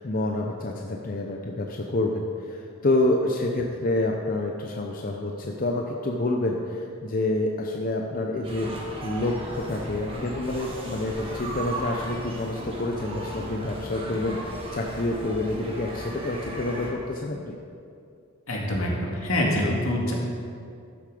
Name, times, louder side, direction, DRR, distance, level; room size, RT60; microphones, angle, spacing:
voice 1, 0.0-17.6, left 2 dB, 40° left, 1 dB, 0.6 m, -28 dB
sound 1, 8.4-16.9, right 1 dB, 25° right, 1.6 m, -36 dB
voice 2, 18.5-20.1, left 1 dB, 80° left, -2 dB, 2.2 m, -25 dB
12.5 x 7.1 x 5.0 m, 2.4 s
head